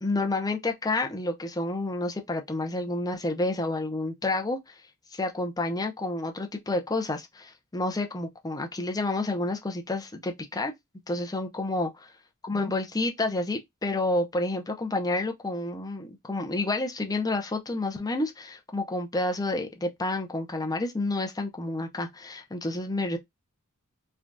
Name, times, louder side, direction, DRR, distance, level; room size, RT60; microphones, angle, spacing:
voice 1, 0.0-4.7 5.1-10.7 11.1-11.9 12.5-23.2, left 2 dB, 15° left, 0.6 m, -29 dB
3.3 x 2.4 x 2.5 m
head